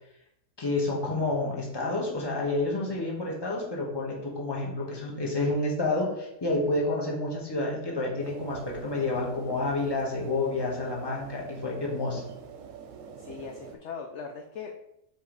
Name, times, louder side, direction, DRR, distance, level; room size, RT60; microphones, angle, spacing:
voice 1, 0.6-12.2, left 2 dB, 15° left, -3 dB, 1.2 m, -29 dB
sound 1, 8.2-13.8, right 6 dB, 65° right, 1.0 m, -44 dB
voice 2, 13.2-14.8, left 5 dB, 60° left, 3 dB, 0.8 m, -40 dB
5.4 x 4.9 x 3.9 m, 0.83 s
omnidirectional pair, 1.6 m